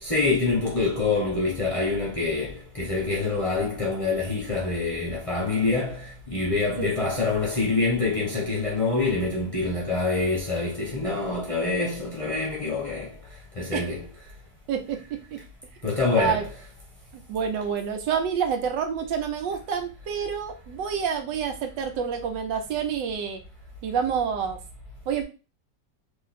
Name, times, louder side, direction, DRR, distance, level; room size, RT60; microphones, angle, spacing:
voice 1, 0.0-13.2 13.6-14.1 15.8-16.7, left 3 dB, 30° left, 0.7 m, -26 dB
voice 2, 14.7-15.0 15.3-15.4 16.2-16.4 17.3-23.4 23.8-24.6 25.1-25.2, right 7 dB, 90° right, 1.4 m, -28 dB
3.0 x 2.8 x 4.0 m
omnidirectional pair, 1.9 m